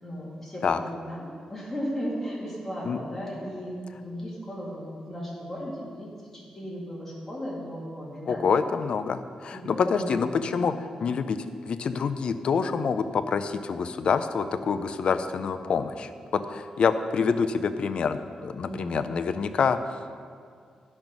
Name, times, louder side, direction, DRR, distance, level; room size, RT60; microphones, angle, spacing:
voice 1, 0.0-8.4 9.5-10.9 18.7-19.1, equal, 15° left, -6 dB, 2.2 m, -36 dB
voice 2, 8.3-10.3 10.5-10.7 11.0-19.8, left 5 dB, 55° left, 10 dB, 0.4 m, -26 dB
10.5 x 5.3 x 6.0 m, 2.2 s
wide cardioid pair, 160°, 2 cm